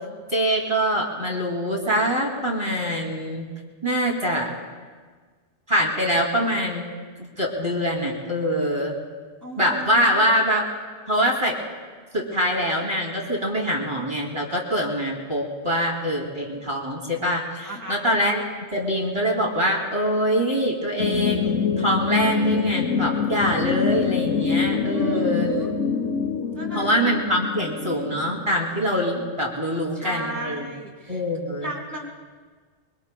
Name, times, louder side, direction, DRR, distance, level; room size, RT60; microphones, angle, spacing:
voice 1, 0.3-3.5 3.8-4.5 5.7-6.8 7.4-8.9 9.6-10.6 11.1-11.6 12.1-18.4 18.7-25.5 26.7-30.7 31.1-31.7, equal, 25° right, -2 dB, 2.6 m, -24 dB
voice 2, 9.4-10.2 17.6-18.2 24.9-25.7 26.5-27.0 29.6-31.2 31.6-32.1, equal, 15° left, -3 dB, 2.2 m, -35 dB
sound 1, 21.0-28.5, left 6 dB, 80° left, 1.0 m, -25 dB
24.5 x 23.5 x 2.3 m, 1.5 s
omnidirectional pair, 1.2 m